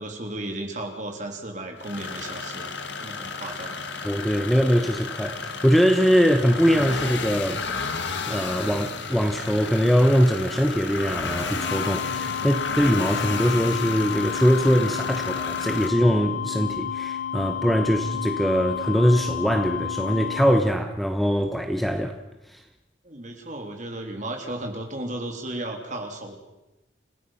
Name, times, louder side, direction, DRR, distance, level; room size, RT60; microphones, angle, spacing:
voice 1, 0.0-2.7 3.0-3.8 23.0-26.4, right 1 dB, 40° right, 3.3 m, -34 dB
sound 1, 1.8-15.9, left 4 dB, 65° left, 1.7 m, -32 dB
voice 2, 4.0-7.6 8.3-22.2 22.5-22.6, equal, ahead, 1.0 m, -22 dB
sound 2, 11.6-20.6, left 8 dB, 90° left, 2.2 m, -31 dB
29.0 x 17.0 x 5.8 m
head